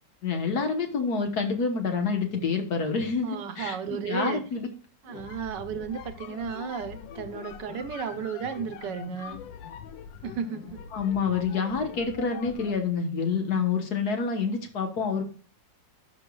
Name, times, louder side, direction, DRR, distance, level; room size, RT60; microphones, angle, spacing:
voice 1, 0.2-4.7 10.9-15.2, left 5 dB, 60° left, 1.7 m, -28 dB
voice 2, 3.2-4.4 5.0-9.4 10.2-10.8, right 7 dB, 70° right, 1.4 m, -34 dB
sound 1, 5.0-12.9, left 8 dB, 90° left, 1.4 m, -43 dB
15.5 x 5.2 x 2.3 m
omnidirectional pair, 2.0 m